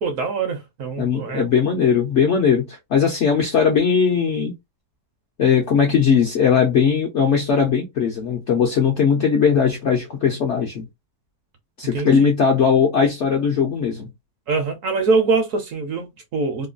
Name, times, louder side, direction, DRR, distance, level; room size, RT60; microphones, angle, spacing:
voice 1, 0.0-1.4 11.9-12.3 14.5-16.7, right 4 dB, 65° right, 0.9 m, -23 dB
voice 2, 1.0-4.5 5.4-10.8 11.8-14.1, left 6 dB, 65° left, 0.7 m, -19 dB
3.0 x 2.2 x 2.4 m
omnidirectional pair, 1.8 m